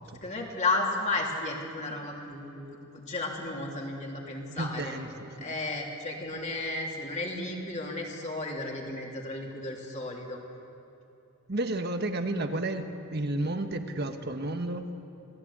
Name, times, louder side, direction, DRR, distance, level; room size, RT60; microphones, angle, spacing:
voice 1, 0.2-4.9 5.4-10.4, left 2 dB, 35° left, 0 dB, 3.3 m, -33 dB
voice 2, 4.6-5.5 11.5-14.9, right 2 dB, 50° right, 6 dB, 1.3 m, -32 dB
27.0 x 18.0 x 8.7 m, 2.9 s
head